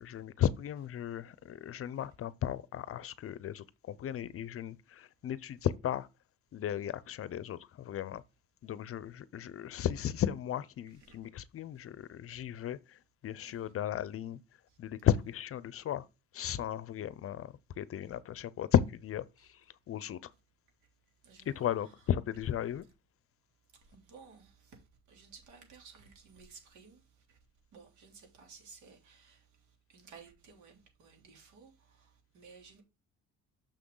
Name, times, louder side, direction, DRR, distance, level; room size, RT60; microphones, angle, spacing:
voice 1, 0.0-6.1 6.5-8.2 8.6-14.4 14.8-16.1 16.3-20.3 21.5-22.8, left 10 dB, 50° left, 0.7 m, -35 dB
voice 2, 21.2-21.7 23.8-24.8 25.1-27.4 27.7-29.5 29.9-32.8, right 5 dB, 75° right, 3.5 m, -56 dB
6.5 x 6.2 x 3.9 m
cardioid pair, 110°, 30 cm